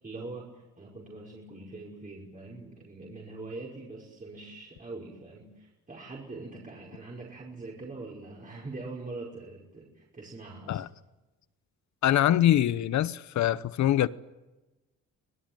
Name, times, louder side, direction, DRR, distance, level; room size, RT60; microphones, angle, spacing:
voice 1, 0.0-10.9, right 3 dB, 25° right, 5.7 m, -43 dB
voice 2, 12.0-14.1, left 12 dB, 65° left, 1.0 m, -24 dB
26.0 x 19.0 x 9.1 m
cardioid pair, 90°, 30 cm